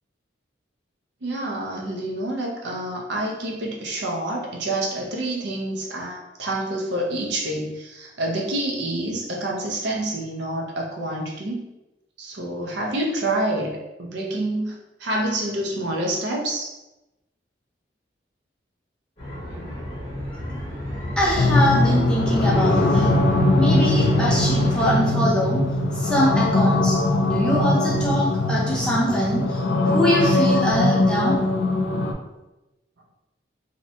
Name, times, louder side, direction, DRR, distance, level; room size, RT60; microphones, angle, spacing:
voice 1, 1.2-11.6 12.2-14.7 15.0-16.7 19.5-19.8, right 1 dB, 70° right, -2 dB, 0.5 m, -27 dB
sound 1, 19.2-25.0, equal, 30° left, 0.8 m, -30 dB
voice 2, 21.2-23.1 23.6-25.6 26.0-31.4, equal, 5° left, -6 dB, 0.5 m, -23 dB
Peaceful Drone, 21.4-32.1, left 2 dB, 70° left, 0.3 m, -21 dB
2.7 x 2.1 x 2.7 m, 0.98 s
head